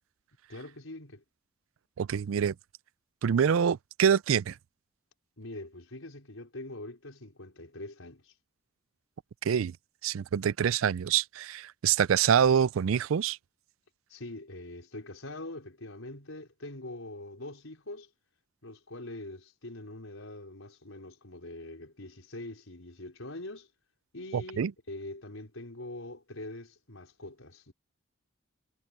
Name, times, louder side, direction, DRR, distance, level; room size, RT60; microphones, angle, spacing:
voice 1, 0.5-1.2 5.4-8.3 14.1-18.1 18.6-23.7 24.1-27.7, left 2 dB, 85° left, 4.6 m, -43 dB
voice 2, 2.0-2.5 3.2-4.5 9.4-9.7 10.0-13.4 24.3-24.7, right 8 dB, 80° right, 0.4 m, -25 dB
head